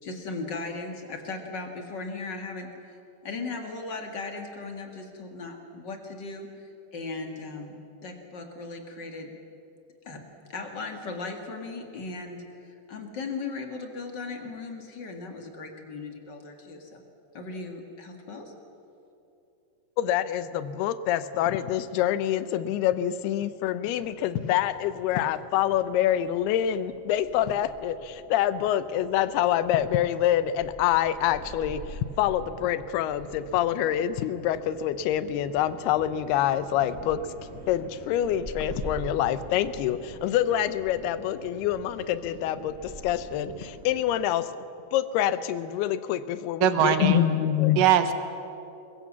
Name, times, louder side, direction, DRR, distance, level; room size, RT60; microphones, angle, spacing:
voice 1, 0.0-3.0 3.2-9.3 10.0-17.0 17.3-18.5, left 3 dB, 40° left, 4 dB, 1.8 m, -37 dB
voice 2, 20.0-44.6 44.9-47.8, left 11 dB, 85° left, 14 dB, 2.8 m, -26 dB
sound 1, 24.6-44.3, right 2 dB, 30° right, 1.2 m, -45 dB
voice 3, 46.6-47.2 47.8-48.1, right 10 dB, 70° right, 9 dB, 2.6 m, -21 dB
22.5 x 21.5 x 7.4 m, 2.8 s
omnidirectional pair, 4.5 m